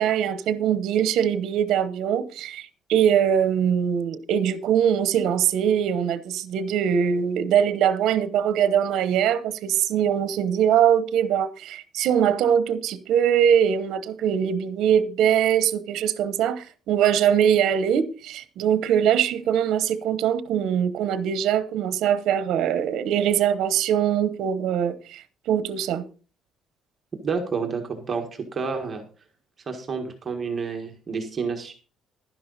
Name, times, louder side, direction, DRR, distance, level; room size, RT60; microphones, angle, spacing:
voice 1, 0.0-26.0, right 9 dB, 70° right, 0.9 m, -22 dB
voice 2, 27.2-29.0 29.7-31.7, right 5 dB, 25° right, 1.6 m, -29 dB
11.5 x 10.5 x 4.1 m
cardioid pair, 160°, 0 cm